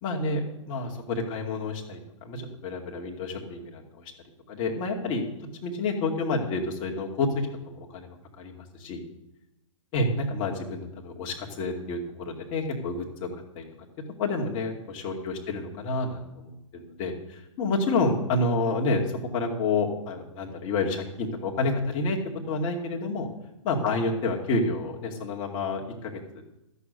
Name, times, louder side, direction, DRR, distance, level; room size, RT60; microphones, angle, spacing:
voice 1, 0.0-4.1 4.5-5.2 5.6-9.0 9.9-13.3 13.5-13.6 14.2-22.2 22.5-23.3 23.6-26.4, left 3 dB, 30° left, 0 dB, 2.3 m, -29 dB
14.0 x 7.0 x 8.2 m, 0.88 s
figure-of-eight pair, 115°, 17 cm